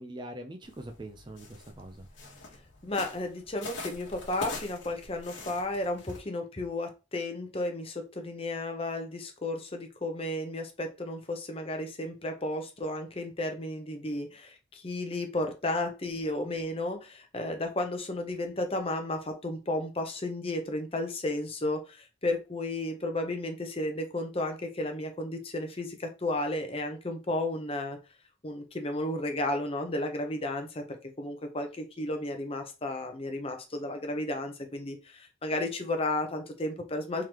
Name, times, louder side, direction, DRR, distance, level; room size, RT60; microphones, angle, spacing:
voice 1, 0.0-2.1, right 1 dB, 25° right, 5 dB, 0.4 m, -43 dB
sound 1, 0.6-6.2, left 2 dB, 65° left, 1.3 m, -44 dB
voice 2, 2.8-28.0 28.4-37.3, left 1 dB, 30° left, 5 dB, 0.7 m, -33 dB
3.7 x 3.2 x 2.9 m, 0.29 s
head